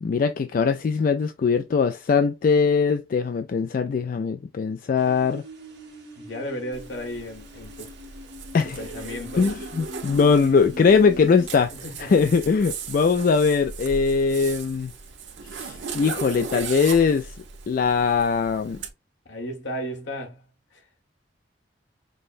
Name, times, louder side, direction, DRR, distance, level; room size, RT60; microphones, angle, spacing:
voice 1, 0.0-5.4 8.5-8.8 9.4-11.7 12.0-14.9 15.5-17.3 17.7-18.8, left 5 dB, 50° left, 0.3 m, -21 dB
sound 1, 5.0-11.5, right 1 dB, 60° right, 1.4 m, -43 dB
voice 2, 6.2-7.9 8.5-9.5 11.8-12.1 19.2-20.4 20.7-20.8, equal, 75° left, 1.4 m, -34 dB
Zipper (clothing), 6.7-18.9, right 5 dB, 85° right, 1.0 m, -38 dB
5.3 x 2.2 x 2.5 m
head